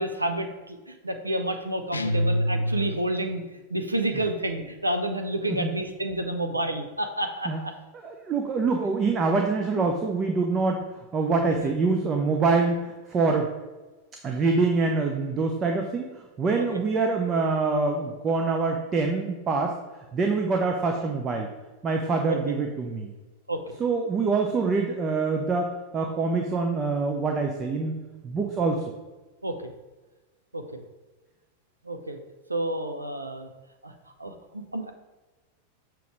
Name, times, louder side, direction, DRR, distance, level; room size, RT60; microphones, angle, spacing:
voice 1, 0.0-3.4 3.7-7.7 9.7-9.9 11.6-11.7 16.6-16.7 22.3-22.5 23.5-23.7 29.4-29.7 30.5-30.8 31.8-32.2 32.5-33.5 33.8-33.9 34.2-34.9, right 1 dB, 80° right, 6 dB, 0.5 m, -30 dB
sound 1, 1.9-3.3, equal, 80° left, 0.4 m, -26 dB
voice 2, 8.0-13.5 14.2-19.7 20.1-21.5 21.8-23.1 23.8-28.0 28.2-28.8, right 4 dB, 25° right, 3 dB, 0.6 m, -25 dB
7.0 x 3.0 x 4.7 m, 1.2 s
figure-of-eight pair, 90°, 0 cm